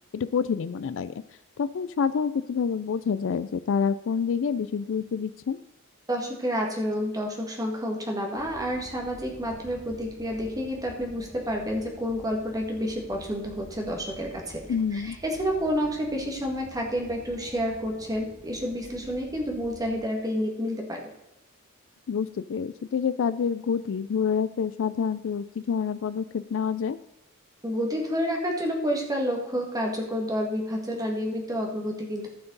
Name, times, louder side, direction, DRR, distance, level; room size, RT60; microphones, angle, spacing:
voice 1, 0.1-1.1 1.6-5.6 14.7-15.2 22.1-27.0, left 6 dB, 65° left, 15 dB, 0.4 m, -27 dB
voice 2, 6.1-14.6 14.9-21.0 27.6-32.3, equal, 15° right, 0 dB, 2.0 m, -29 dB
sound 1, 8.4-20.0, equal, 25° left, 1.6 m, -48 dB
15.0 x 5.8 x 4.0 m, 0.92 s
head